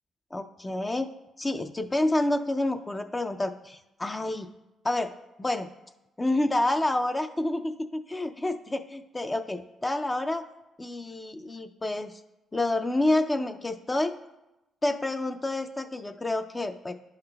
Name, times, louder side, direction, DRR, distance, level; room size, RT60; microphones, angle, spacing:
voice 1, 0.3-1.1 1.4-4.5 4.8-5.1 5.4-5.7 6.2-10.4 10.8-12.2 12.5-14.1 14.8-16.9, left 2 dB, 20° left, 7 dB, 0.4 m, -28 dB
10.5 x 5.7 x 2.2 m, 0.95 s
cardioid pair, 90°, 0 cm